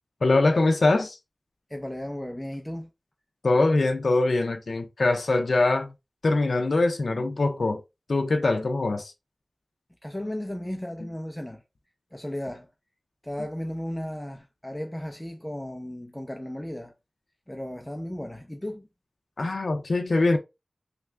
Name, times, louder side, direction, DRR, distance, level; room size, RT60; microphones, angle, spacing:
voice 1, 0.2-1.2 3.4-5.9 6.2-7.8 8.1-9.1 19.4-20.4, left 2 dB, 85° left, 0.4 m, -23 dB
voice 2, 1.7-2.9 10.0-11.6 12.1-12.7 13.2-16.9 17.5-18.9, left 1 dB, 10° left, 0.5 m, -35 dB
3.2 x 2.4 x 3.2 m
wide cardioid pair, 60°, 0 cm